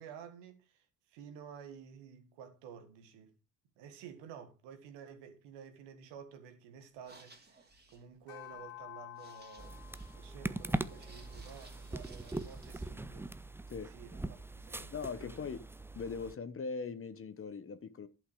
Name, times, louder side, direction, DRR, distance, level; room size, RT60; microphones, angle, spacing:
voice 1, 0.0-3.4 3.8-9.8 10.2-13.3 13.8-15.5, right 7 dB, 70° right, 1.9 m, -52 dB
sound 1, 6.9-12.9, right 2 dB, 20° right, 2.8 m, -61 dB
sound 2, 8.3-12.9, left 17 dB, 70° left, 0.9 m, -53 dB
sound 3, 9.6-16.3, right 2 dB, 5° right, 0.6 m, -41 dB
voice 2, 14.9-15.7 15.9-18.1, left 5 dB, 30° left, 1.1 m, -40 dB
11.0 x 5.7 x 4.8 m
hypercardioid pair, 50°, 44 cm